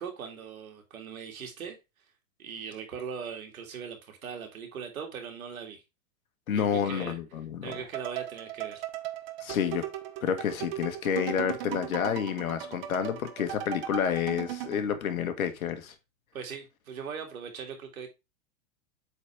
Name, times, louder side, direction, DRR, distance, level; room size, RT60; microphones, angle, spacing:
voice 1, 0.0-1.8 2.4-5.8 6.5-7.2 7.6-8.8 16.3-18.1, right 6 dB, 90° right, 2.4 m, -40 dB
voice 2, 6.5-7.7 9.4-9.8 10.2-15.9, left 8 dB, 90° left, 1.6 m, -29 dB
sound 1, 7.7-14.8, right 12 dB, 45° right, 1.0 m, -38 dB
8.1 x 4.3 x 3.4 m
supercardioid pair, 160°, 41 cm